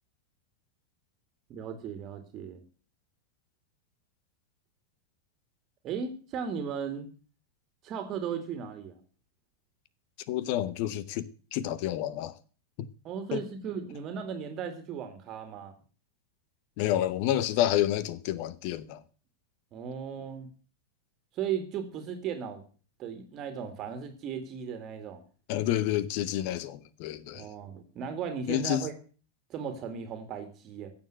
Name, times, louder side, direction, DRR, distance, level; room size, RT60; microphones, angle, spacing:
voice 1, 1.5-2.6 5.8-7.1 7.8-9.0 13.0-15.7 19.7-20.5 21.3-22.6 23.0-25.2 27.3-28.9 29.5-30.9, right 7 dB, 35° right, 2.3 m, -36 dB
voice 2, 10.3-12.4 13.3-13.4 16.8-19.0 25.5-27.5 28.5-28.9, left 12 dB, 45° left, 1.2 m, -29 dB
16.0 x 7.2 x 7.8 m
figure-of-eight pair, 90°, 0 cm